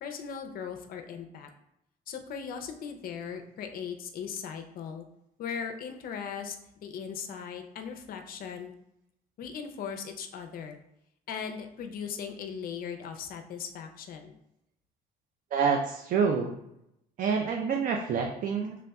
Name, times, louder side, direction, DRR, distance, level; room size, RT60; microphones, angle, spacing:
voice 1, 0.0-1.5 2.1-5.1 5.4-6.5 6.8-8.7 9.4-10.8 11.3-14.4, left 7 dB, 60° left, 5 dB, 0.5 m, -38 dB
voice 2, 15.5-16.5 17.2-18.8, right 6 dB, 55° right, 2 dB, 0.5 m, -27 dB
5.1 x 3.4 x 2.3 m, 0.80 s
cardioid pair, 110°, 17 cm